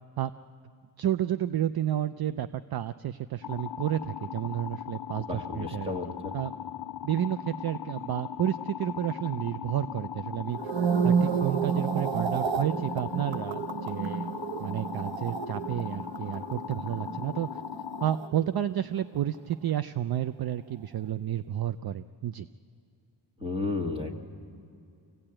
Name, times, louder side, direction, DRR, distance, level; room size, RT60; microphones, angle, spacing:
voice 1, 1.0-5.9 6.3-6.5 7.0-10.6 11.0-14.3 14.6-17.6 18.0-22.5, right 11 dB, 55° right, 12 dB, 0.5 m, -31 dB
sound 1, 3.4-18.2, left 10 dB, 55° left, 0.6 m, -39 dB
voice 2, 5.2-6.3 23.4-24.2, left 3 dB, 15° right, 3 dB, 1.6 m, -33 dB
sound 2, 10.5-18.9 19.2-19.5, right 6 dB, 90° right, 1.0 m, -31 dB
24.5 x 16.5 x 8.8 m, 2.5 s
wide cardioid pair, 115°, 45 cm